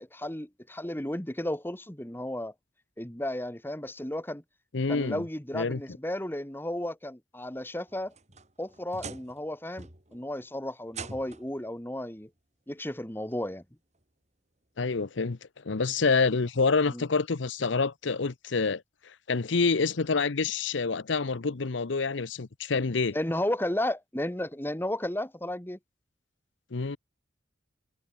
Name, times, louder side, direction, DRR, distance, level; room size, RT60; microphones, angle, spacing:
voice 1, 0.0-2.5 3.0-4.4 4.9-8.1 8.6-12.3 12.7-13.6 16.9-17.0 23.1-25.8, left 1 dB, 10° left, 1.8 m, -33 dB
voice 2, 4.7-5.2 5.5-5.8 14.8-15.4 15.6-18.8 19.3-23.2 26.7-27.0, left 4 dB, 75° left, 0.8 m, -27 dB
sound 1, 7.9-9.5 9.8-10.2 10.9-11.6 12.8-12.9 13.5-13.6 15.2-15.3, right 4 dB, 35° right, 4.9 m, -44 dB
head